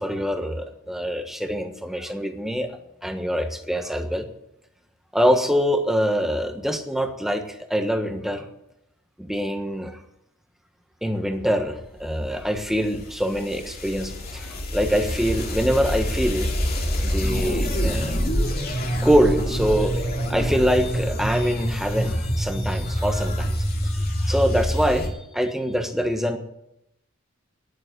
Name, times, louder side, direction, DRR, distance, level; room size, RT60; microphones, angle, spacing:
voice 1, 0.0-2.7 3.0-4.2 5.1-8.4 9.2-10.0 11.0-16.5 17.0-18.3 19.0-19.9 20.3-23.5 24.2-26.4, equal, ahead, 6 dB, 1.3 m, -24 dB
sound 1, 12.2-25.1, equal, 50° left, 2.7 m, -26 dB
11.0 x 11.0 x 9.6 m, 0.83 s
head